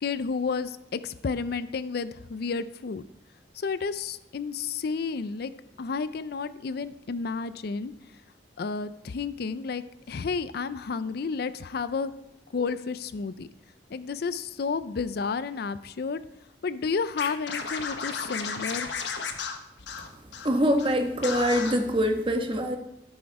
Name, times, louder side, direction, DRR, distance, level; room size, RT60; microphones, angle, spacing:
voice 1, 0.0-3.0 3.6-5.5 5.8-7.9 8.6-12.1 12.5-13.5 13.9-16.2 16.6-18.9, left 5 dB, 60° left, 14 dB, 0.4 m, -31 dB
Scratching (performance technique), 17.2-20.5 20.8-20.9 21.2-21.7, left 5 dB, 85° left, 1.2 m, -33 dB
voice 2, 20.4-22.8, equal, 30° right, 5 dB, 1.2 m, -24 dB
14.0 x 6.3 x 4.7 m, 0.88 s
head